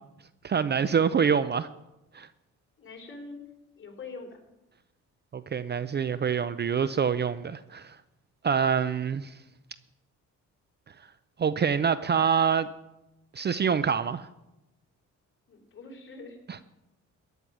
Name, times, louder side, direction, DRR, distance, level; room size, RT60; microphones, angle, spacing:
voice 1, 0.4-1.7 2.1-2.3 5.3-8.0 8.4-9.3 11.4-12.7 13.3-14.3 16.5-16.6, right 7 dB, 35° right, 15 dB, 0.5 m, -26 dB
voice 2, 2.8-3.5 3.8-4.4 15.5-16.4, left 3 dB, 40° left, 2 dB, 3.4 m, -43 dB
15.0 x 10.0 x 6.2 m, 0.95 s
cardioid pair, 90°, 30 cm